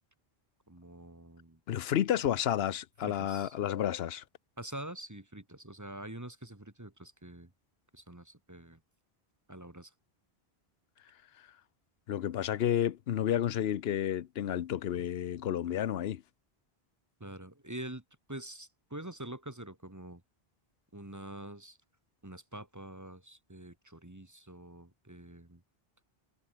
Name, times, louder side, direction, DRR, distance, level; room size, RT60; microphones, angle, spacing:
voice 1, 0.7-1.6 3.0-3.5 4.6-7.5 7.9-8.8 9.5-9.9 17.2-18.0 18.3-20.2 20.9-21.8 22.2-25.6, right 1 dB, 15° right, 1.7 m, -45 dB
voice 2, 1.7-4.2 12.1-16.2, left 10 dB, 75° left, 0.9 m, -31 dB
omnidirectional pair, 1.0 m